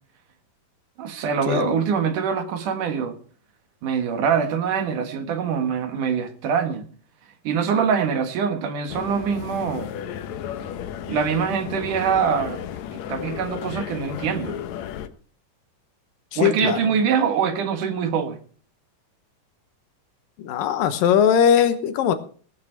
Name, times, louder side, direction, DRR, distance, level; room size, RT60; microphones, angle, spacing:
voice 1, 1.0-3.2 3.8-6.8 7.4-9.9 11.1-12.6 13.1-14.6 16.4-18.4, right 6 dB, 70° right, 8 dB, 3.1 m, -24 dB
sound 1, 8.9-15.1, left 9 dB, 70° left, 1.9 m, -33 dB
voice 2, 16.4-16.8 20.4-22.2, left 8 dB, 85° left, 11 dB, 2.8 m, -19 dB
18.0 x 8.6 x 4.6 m, 0.42 s
omnidirectional pair, 4.0 m